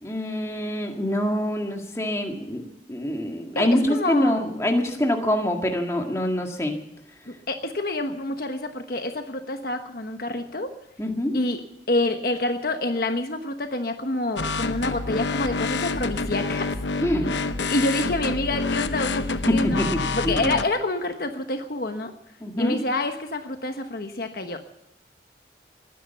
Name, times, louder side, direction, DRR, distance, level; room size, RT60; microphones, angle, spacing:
voice 1, 0.0-6.8 11.0-11.4 17.0-17.4 19.5-20.5 22.4-22.8, left 1 dB, 15° left, 2 dB, 1.9 m, -25 dB
voice 2, 3.5-4.4 7.3-10.7 11.3-11.6 11.9-16.8 17.6-22.1 22.6-24.6, left 2 dB, 55° left, 6 dB, 1.1 m, -27 dB
sound 1, 14.4-20.6, left 3 dB, 80° left, 0.9 m, -28 dB
20.0 x 10.5 x 7.1 m, 0.82 s
head